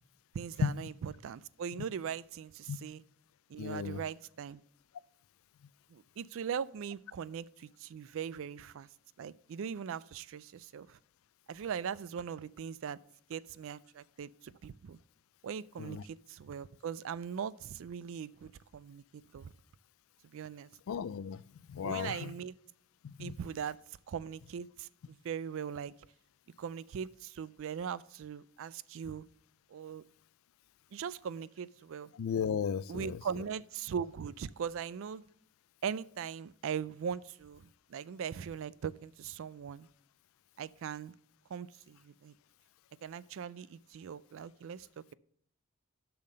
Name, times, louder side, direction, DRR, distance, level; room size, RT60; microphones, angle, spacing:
voice 1, 0.3-3.0 3.5-4.6 5.9-8.9 9.2-11.0 11.5-13.0 13.3-15.0 15.4-19.0 19.3-19.5 20.3-20.7 21.8-22.6 23.2-23.8 24.1-25.9 26.6-29.3 29.7-30.0 30.9-32.1 32.9-35.2 35.8-39.9 40.6-41.1 41.5-42.3 43.0-45.1, right 7 dB, 65° right, 0.3 m, -40 dB
voice 2, 3.6-4.0 15.8-16.0 20.9-21.4 21.7-22.3 23.0-23.3 32.2-33.2, left 7 dB, 70° left, 0.3 m, -34 dB
7.2 x 5.8 x 6.6 m
head